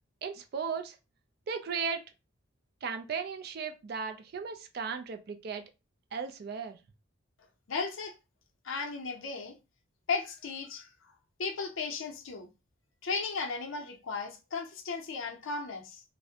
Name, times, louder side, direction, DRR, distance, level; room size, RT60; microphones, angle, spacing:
voice 1, 0.2-1.0 1.5-2.0 2.8-5.6 6.1-6.8, right 6 dB, 50° right, 0.3 m, -36 dB
voice 2, 7.7-8.1 8.6-9.5 10.1-10.9 11.4-12.5 13.0-16.0, left 4 dB, 75° left, 0.5 m, -35 dB
2.5 x 2.0 x 2.7 m
head